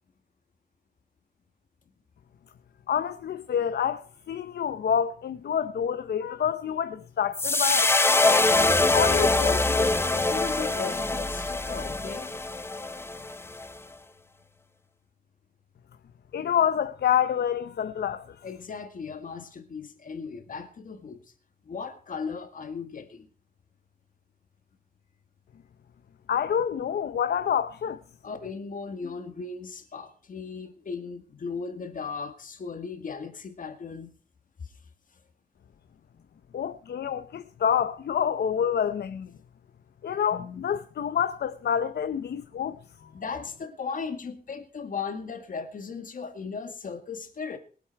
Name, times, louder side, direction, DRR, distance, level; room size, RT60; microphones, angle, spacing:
voice 1, 2.9-4.0 4.3-8.5 8.9-9.9 16.3-18.4 26.3-28.0 36.5-39.3 40.0-42.8, left 8 dB, 65° left, 0.8 m, -27 dB
sound 1, 7.3-13.7, left 2 dB, 15° left, 0.7 m, -24 dB
voice 2, 10.1-12.5 18.4-21.3 21.6-23.3 28.2-34.1 34.6-34.7 40.3-40.6 43.0-47.6, left 5 dB, 50° left, 1.9 m, -37 dB
22.5 x 8.3 x 4.6 m
wide cardioid pair, 175°, 18 cm